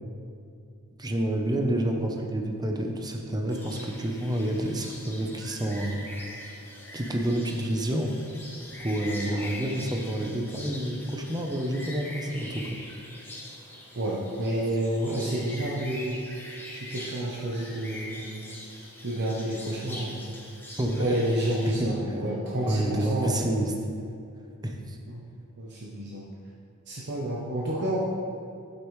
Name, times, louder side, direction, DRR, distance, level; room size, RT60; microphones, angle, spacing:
voice 1, 1.0-6.0 6.9-8.1 8.8-12.7 20.8-21.2 21.8-22.1 22.6-23.7 24.6-25.0, right 1 dB, 20° right, 2 dB, 0.7 m, -29 dB
sound 1, 3.5-21.8, left 1 dB, 10° left, 1.1 m, -43 dB
voice 2, 14.0-16.2 16.7-18.5 19.0-20.3 21.0-23.6 25.1-25.2 25.6-26.2 26.9-28.0, right 1 dB, 50° right, -4 dB, 0.9 m, -30 dB
8.4 x 8.2 x 3.2 m, 2.5 s
head